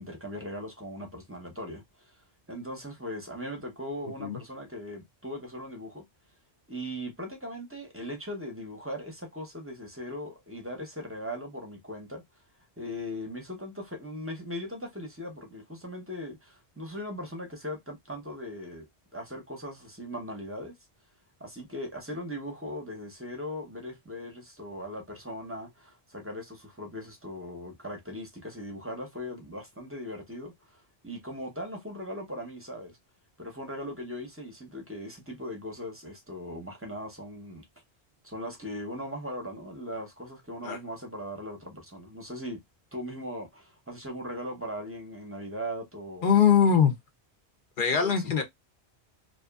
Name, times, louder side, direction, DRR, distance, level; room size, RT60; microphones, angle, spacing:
voice 1, 0.0-2.1 2.5-6.0 6.7-12.2 12.8-20.7 21.4-33.0 33.4-37.6 38.2-42.6 42.9-46.3 47.9-48.4, equal, 15° right, 0.7 m, -39 dB
voice 2, 46.2-46.9 47.8-48.4, left 7 dB, 55° left, 0.7 m, -22 dB
2.8 x 2.5 x 2.3 m
omnidirectional pair, 1.1 m